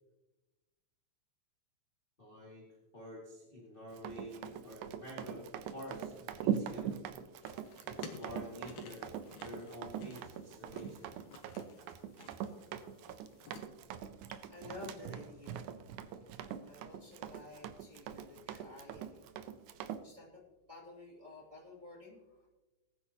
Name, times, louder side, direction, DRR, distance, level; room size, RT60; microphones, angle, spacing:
voice 1, 2.2-2.7 2.9-5.5 5.7-6.9 7.8-9.2 9.4-11.1, left 1 dB, 20° left, -4 dB, 1.9 m, -48 dB
Run, 3.9-20.0, right 9 dB, 85° right, 2.1 m, -42 dB
sound 1, 7.4-13.6, left 4 dB, 80° left, 2.6 m, -54 dB
voice 2, 14.0-19.2 20.0-20.4 20.7-22.5, left 2 dB, 10° right, -5 dB, 2.3 m, -52 dB
19.0 x 9.9 x 2.9 m, 1.1 s
omnidirectional pair, 3.4 m